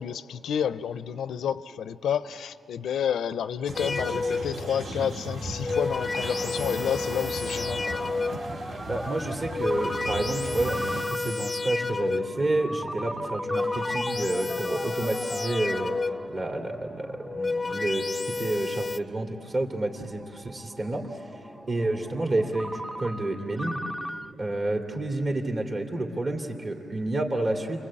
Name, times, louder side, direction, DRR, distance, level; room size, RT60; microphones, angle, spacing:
voice 1, 0.0-8.0, left 8 dB, 80° left, 15 dB, 0.5 m, -30 dB
sound 1, 3.7-11.0, right 1 dB, 75° right, 2.0 m, -37 dB
sound 2, 3.8-4.7 5.4-8.6 9.3-12.5 13.2-16.4 17.1-19.0, left 3 dB, 30° left, 0.6 m, -31 dB
Ringtone, 4.6-24.3, right 1 dB, 10° right, 0.6 m, -40 dB
voice 2, 8.9-16.0 16.3-21.3 21.7-23.8 24.4-27.8, right 2 dB, 45° right, 2 dB, 2.9 m, -30 dB
29.0 x 22.0 x 8.8 m, 3.0 s
cardioid pair, 70°, 0 cm